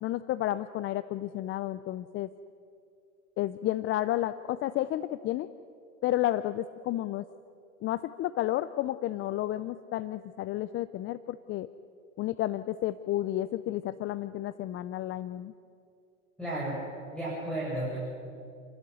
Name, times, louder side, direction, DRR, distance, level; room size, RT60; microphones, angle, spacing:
voice 1, 0.0-2.3 3.4-5.5 6.0-7.2 7.8-11.7 12.2-15.5, left 14 dB, 30° left, 14 dB, 0.6 m, -31 dB
voice 2, 16.4-16.8 17.1-18.0, right 1 dB, ahead, -7 dB, 7.8 m, -33 dB
29.5 x 12.5 x 9.6 m, 2.5 s
hypercardioid pair, 105°, 43 cm